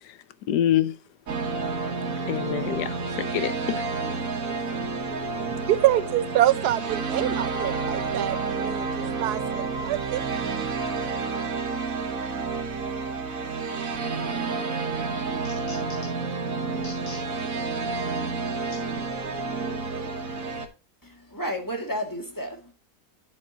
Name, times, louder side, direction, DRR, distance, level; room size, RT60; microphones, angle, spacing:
voice 1, 0.5-0.9 2.3-3.8, left 11 dB, 85° left, 1.3 m, -26 dB
sound 1, 1.3-20.7, right 4 dB, 60° right, 1.5 m, -30 dB
voice 2, 5.3-10.7, right 13 dB, 80° right, 1.1 m, -26 dB
sound 2, 14.5-14.6 15.0-16.3 16.7-17.3 17.7-17.8 18.7-18.8 19.6-19.7, left 1 dB, 55° left, 4.5 m, -44 dB
voice 3, 21.0-22.7, equal, 10° left, 2.0 m, -32 dB
9.7 x 8.1 x 2.8 m
omnidirectional pair, 1.7 m